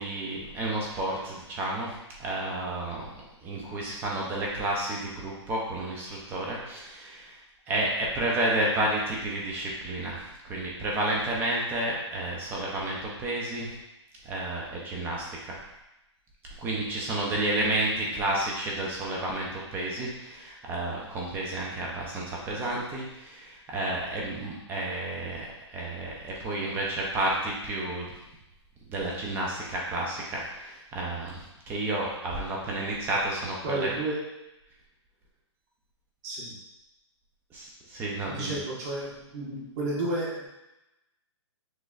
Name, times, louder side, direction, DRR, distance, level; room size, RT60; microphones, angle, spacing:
voice 1, 0.0-3.1 3.4-7.4 7.7-13.7 14.2-15.5 16.6-28.1 28.9-33.9 37.5-38.6, right 1 dB, 15° right, -3 dB, 0.5 m, -31 dB
voice 2, 33.6-34.2 36.2-36.5 38.3-40.5, right 2 dB, 30° right, -5 dB, 1.3 m, -32 dB
6.3 x 3.1 x 2.4 m, 0.93 s
hypercardioid pair, 160°, 15 cm